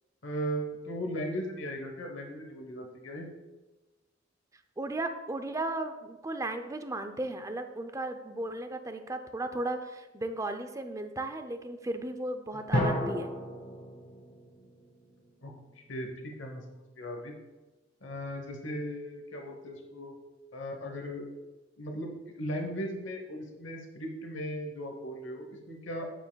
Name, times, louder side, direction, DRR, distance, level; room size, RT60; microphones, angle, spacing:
voice 1, 0.2-3.3 12.5-12.6 15.4-17.3 18.0-20.1 20.5-21.4 21.8-26.1, equal, 85° left, 2 dB, 1.0 m, -37 dB
voice 2, 4.8-13.3, right 2 dB, 15° right, 7 dB, 0.5 m, -35 dB
sound 1, 12.7-15.5, left 1 dB, 60° left, 1.6 m, -33 dB
9.0 x 7.2 x 2.3 m, 1.1 s
head